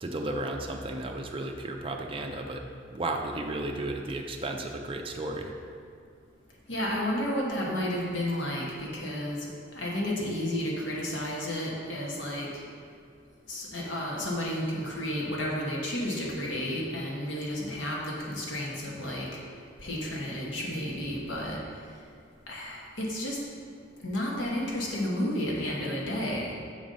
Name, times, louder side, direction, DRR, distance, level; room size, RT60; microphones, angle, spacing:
voice 1, 0.0-2.6 2.9-5.5, right 2 dB, 25° right, 2 dB, 0.5 m, -33 dB
voice 2, 6.7-9.5 9.7-12.5 13.5-19.3 19.8-21.6 22.5-23.4 24.0-26.5, left 1 dB, 70° left, -3 dB, 1.2 m, -32 dB
7.0 x 3.8 x 5.4 m, 2.2 s
head